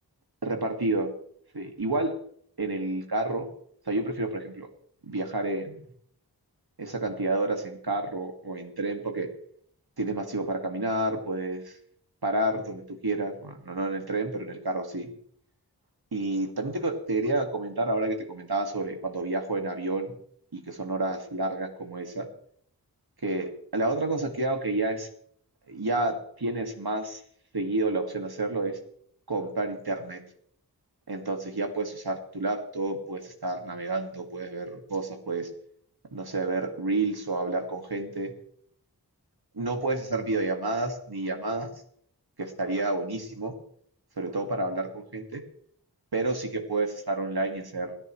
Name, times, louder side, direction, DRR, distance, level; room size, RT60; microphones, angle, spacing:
voice 1, 0.4-1.1 1.5-2.1 2.6-3.5 3.9-4.7 5.0-5.8 6.8-9.3 10.0-11.8 12.2-15.1 16.1-20.1 20.5-22.3 23.2-25.1 25.7-27.2 27.5-28.8 29.3-30.2 31.1-35.5 36.1-38.3 39.5-41.7 42.4-43.5 44.2-44.9 45.1-45.4 46.1-47.9, right 2 dB, 70° right, 4 dB, 2.2 m, -30 dB
28.5 x 9.9 x 3.2 m, 0.64 s
wide cardioid pair, 40°, 38 cm